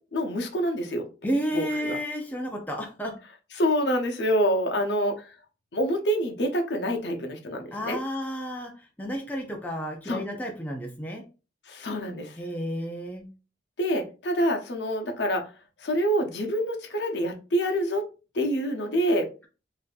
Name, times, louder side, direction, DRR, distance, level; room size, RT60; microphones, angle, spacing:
voice 1, 0.1-1.1 1.5-2.0 3.6-5.3 5.7-8.0 10.1-10.2 11.7-12.4 13.8-15.5 15.8-18.0 18.3-19.3, equal, 70° left, 4 dB, 0.8 m, -26 dB
voice 2, 1.2-3.2 7.7-11.2 12.4-13.3, equal, 10° left, 1 dB, 0.5 m, -31 dB
4.0 x 2.7 x 2.4 m, 0.33 s
head